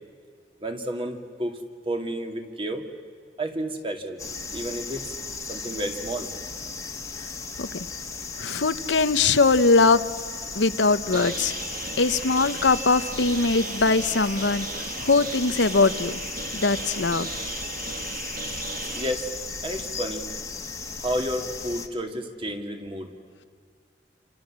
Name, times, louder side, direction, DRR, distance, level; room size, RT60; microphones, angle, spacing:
voice 1, 0.6-1.6 1.9-2.9 3.4-4.2 4.5-5.1 5.5-6.3 18.0-18.1 18.9-19.3 19.6-20.3 21.0-23.1, right 1 dB, 30° right, 5 dB, 2.5 m, -31 dB
sound 1, 4.2-21.9, left 4 dB, 20° left, 1.6 m, -36 dB
voice 2, 8.4-10.0 10.5-11.5 12.0-16.2 16.5-17.3, left 3 dB, 85° left, 12 dB, 1.0 m, -21 dB
sound 2, 11.1-19.1, right 4 dB, 55° right, 2.2 m, -36 dB
28.5 x 27.5 x 7.5 m, 2.1 s
head